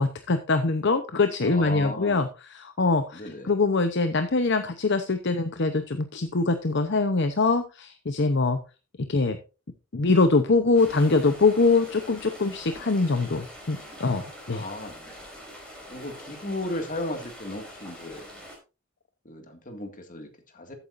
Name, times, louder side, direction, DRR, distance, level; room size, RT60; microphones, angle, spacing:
voice 1, 0.0-8.6 9.1-9.4 9.9-14.6, left 3 dB, 55° left, 8 dB, 0.8 m, -23 dB
voice 2, 1.4-2.3 3.1-3.5 14.5-15.2 15.9-18.2 19.3-20.7, left 1 dB, 40° left, 6 dB, 2.0 m, -35 dB
sound 1, 10.7-18.6, equal, 5° left, 5.0 m, -44 dB
13.5 x 9.1 x 2.6 m, 0.31 s
head